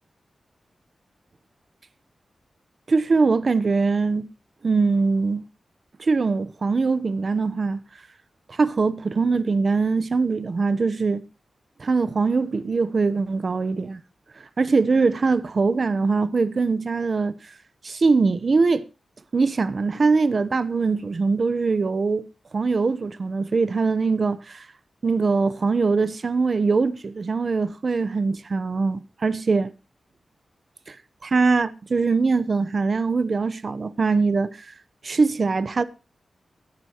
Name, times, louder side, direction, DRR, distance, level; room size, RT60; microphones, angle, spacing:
voice 1, 2.9-4.3 4.6-5.4 6.0-7.8 8.5-11.2 11.8-14.0 14.6-17.3 17.8-18.9 19.3-22.3 22.5-24.6 25.0-29.7 30.9-31.0 31.2-34.5 35.0-35.8, right 4 dB, 55° right, 0.9 m, -22 dB
17.0 x 11.5 x 3.0 m
cardioid pair, 70°, 0 cm